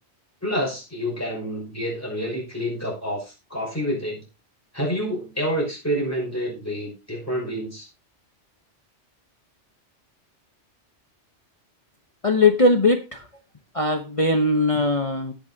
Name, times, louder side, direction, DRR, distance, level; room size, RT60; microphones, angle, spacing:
voice 1, 0.4-4.2 4.7-7.9, equal, 10° left, -2 dB, 5.8 m, -28 dB
voice 2, 12.2-13.2 13.7-15.3, left 2 dB, 30° left, 4 dB, 1.0 m, -20 dB
18.5 x 6.5 x 2.8 m, 0.27 s
omnidirectional pair, 1.2 m